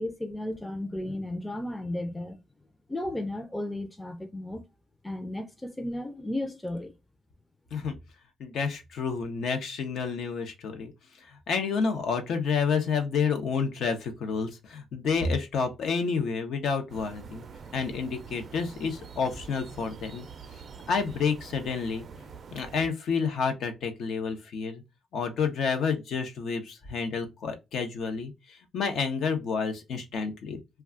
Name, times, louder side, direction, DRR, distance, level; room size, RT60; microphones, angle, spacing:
voice 1, 0.0-2.4 2.9-4.6 5.0-6.9, left 1 dB, 15° left, 0.5 m, -34 dB
voice 2, 8.4-10.9 11.2-17.4 17.7-20.2 20.9-22.0 22.5-24.8 25.1-30.6, left 5 dB, 70° left, 0.7 m, -29 dB
sound 1, 16.9-22.9, right 5 dB, 50° right, 0.4 m, -45 dB
2.3 x 2.3 x 3.6 m
cardioid pair, 90°, 0 cm